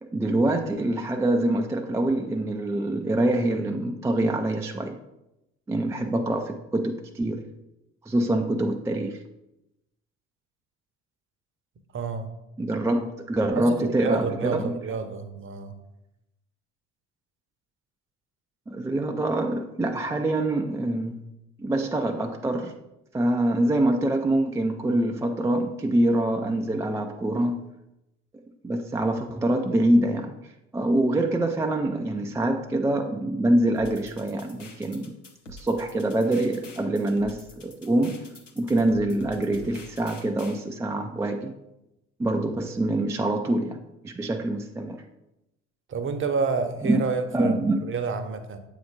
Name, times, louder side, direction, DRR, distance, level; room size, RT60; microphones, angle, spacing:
voice 1, 0.0-5.0 5.7-7.4 8.1-9.2 12.6-14.7 18.7-21.2 21.6-22.8 23.1-27.6 28.6-35.1 35.5-38.2 38.6-41.5 42.2-43.8 44.0-45.0 46.8-47.0 47.3-47.8, right 1 dB, 10° right, 4 dB, 0.4 m, -25 dB
voice 2, 11.9-12.3 13.5-15.8 45.9-48.6, right 5 dB, 35° right, 9 dB, 0.8 m, -29 dB
sound 1, 33.7-40.6, left 2 dB, 90° left, 0.6 m, -46 dB
7.6 x 2.8 x 5.0 m, 0.91 s
figure-of-eight pair, 45°, 36 cm